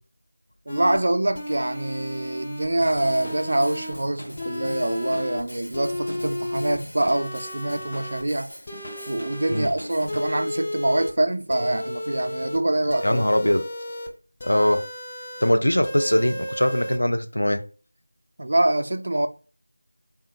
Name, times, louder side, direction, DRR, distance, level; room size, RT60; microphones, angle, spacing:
sound 1, 0.7-1.0 1.3-2.7 3.0-4.0 4.4-5.4 5.7-6.8 7.1-8.2 8.7-9.7 10.1-11.1 11.5-12.6 12.9-14.1 14.4-15.5 15.8-17.0, left 1 dB, 20° left, 0.5 m, -33 dB
voice 1, 0.7-8.5 9.1-13.5 18.4-19.3, right 1 dB, 45° right, 0.3 m, -25 dB
Drum kit / Drum, 2.8-10.3, left 1 dB, 50° left, 1.0 m, -41 dB
voice 2, 13.0-13.6 14.4-14.8 15.4-17.6, left 1 dB, 70° left, 0.5 m, -21 dB
3.6 x 2.2 x 2.8 m
figure-of-eight pair, 170°, 0 cm